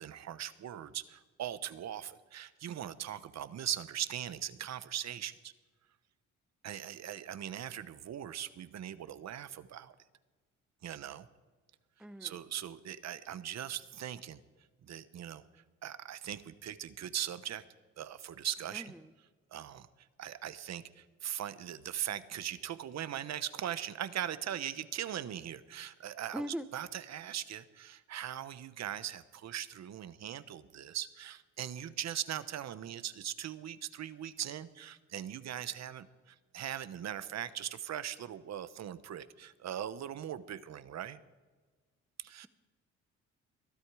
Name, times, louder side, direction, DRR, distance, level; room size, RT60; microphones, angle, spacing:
voice 1, 0.0-5.5 6.6-9.9 10.8-11.3 12.2-14.4 14.8-15.4 15.8-17.6 18.0-18.9 19.5-19.9 20.2-26.4 26.7-41.2 42.2-42.5, right 10 dB, 60° right, 14 dB, 1.0 m, -40 dB
voice 2, 12.0-12.4 18.7-19.1 26.3-26.7, equal, 5° right, 13 dB, 0.9 m, -40 dB
22.0 x 12.5 x 4.8 m, 1.4 s
cardioid pair, 90°, 30 cm